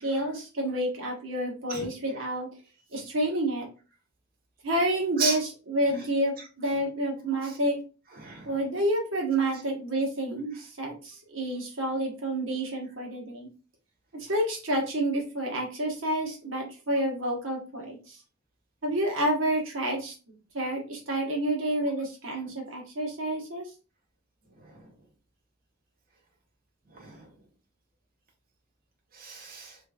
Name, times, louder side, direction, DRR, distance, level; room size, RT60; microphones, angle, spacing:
voice 1, 0.0-2.5 2.9-3.7 4.6-7.8 8.4-13.5 14.1-18.2 18.8-20.1 20.5-23.7, right 1 dB, 70° right, -1 dB, 1.2 m, -29 dB
voice 2, 8.2-8.5 24.6-24.9 26.9-27.3 29.1-29.8, right 5 dB, 45° right, 0 dB, 0.9 m, -34 dB
3.2 x 3.1 x 2.3 m, 0.35 s
head